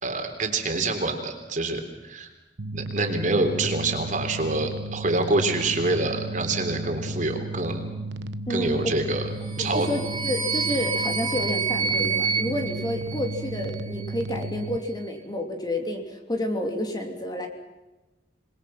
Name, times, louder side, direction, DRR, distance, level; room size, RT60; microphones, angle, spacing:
voice 1, 0.0-2.3 2.7-7.8 8.5-9.2 9.6-9.9, right 2 dB, 45° right, 4 dB, 3.6 m, -26 dB
sound 1, 2.6-14.8, right 2 dB, 85° right, 1.0 m, -34 dB
voice 2, 8.5-8.9 9.6-17.5, left 1 dB, 25° left, 3 dB, 3.1 m, -30 dB
sound 2, 9.4-13.7, right 5 dB, 25° right, 3.5 m, -28 dB
28.0 x 21.5 x 5.9 m, 1.1 s
head